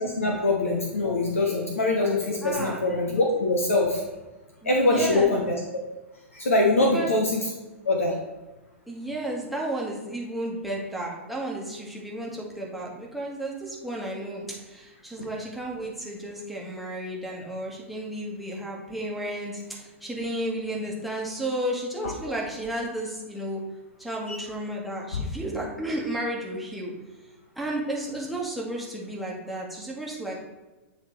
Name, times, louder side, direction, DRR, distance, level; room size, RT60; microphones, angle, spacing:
voice 1, 0.0-4.0 4.6-5.6 6.3-7.4 7.9-8.1 24.3-24.4, left 2 dB, 75° left, 0 dB, 0.8 m, -23 dB
voice 2, 2.4-2.8 4.6-5.3 6.8-7.1 8.9-23.6 24.0-26.9 27.5-30.5, right 1 dB, ahead, -4 dB, 1.3 m, -33 dB
8.8 x 3.5 x 3.1 m, 1.1 s
figure-of-eight pair, 100°, 7 cm